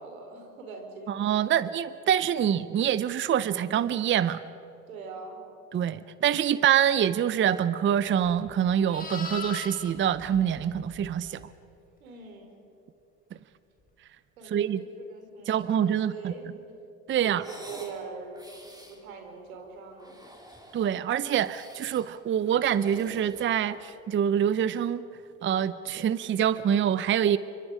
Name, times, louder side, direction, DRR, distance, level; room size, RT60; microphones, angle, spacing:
voice 1, 0.0-1.1 4.9-5.4 12.0-12.6 14.4-14.7 15.0-16.5 17.2-18.5 18.9-20.2, right 5 dB, 85° right, 3 dB, 4.6 m, -42 dB
voice 2, 1.1-4.4 5.7-11.4 14.4-14.8 15.5-16.3 17.1-17.4 20.7-25.0 25.4-27.4, right 9 dB, 30° right, 16 dB, 0.7 m, -25 dB
Livestock farm animals working animals, 8.2-11.5 15.8-16.0, left 4 dB, 20° left, 4.8 m, -41 dB
sound 1, 17.3-18.0 18.3-19.0 19.9-21.0 21.4-22.1 22.5-24.0, equal, 10° right, 4.5 m, -48 dB
28.0 x 25.0 x 5.1 m, 2.8 s
hypercardioid pair, 80°, 41 cm